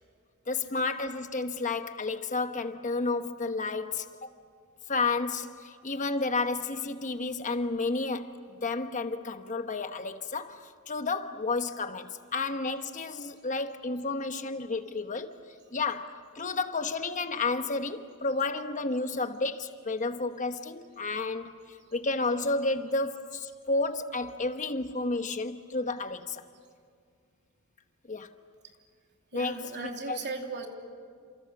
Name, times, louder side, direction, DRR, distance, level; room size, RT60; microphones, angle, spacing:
voice 1, 0.5-4.3 4.9-8.3 8.6-15.3 15.7-21.6 21.9-26.4 28.1-28.3 29.3-30.2, left 3 dB, 35° left, 1.1 m, -31 dB
voice 2, 29.3-30.7, right 3 dB, 50° right, 3.1 m, -37 dB
29.5 x 27.5 x 7.1 m
head